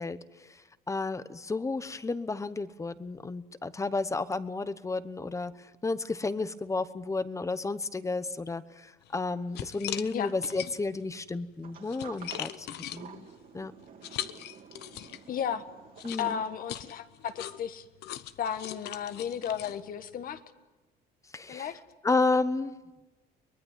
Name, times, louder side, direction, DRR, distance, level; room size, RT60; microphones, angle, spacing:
voice 1, 0.0-12.7 12.9-13.3 13.5-13.7 16.0-16.4 21.3-21.7 22.0-22.8, left 3 dB, 20° left, 14 dB, 1.0 m, -32 dB
sound 1, 9.0-9.2 9.5-11.0 11.6-15.4 16.0-20.4, left 12 dB, 75° left, 1.0 m, -40 dB
Sliding door, 11.6-17.1, right 7 dB, 55° right, 2.8 m, -49 dB
voice 2, 15.3-15.6 16.2-17.8 18.4-20.4 21.5-21.8, left 8 dB, 55° left, 10 dB, 1.5 m, -34 dB
23.5 x 20.0 x 9.2 m, 1.1 s
cardioid pair, 110°, 17 cm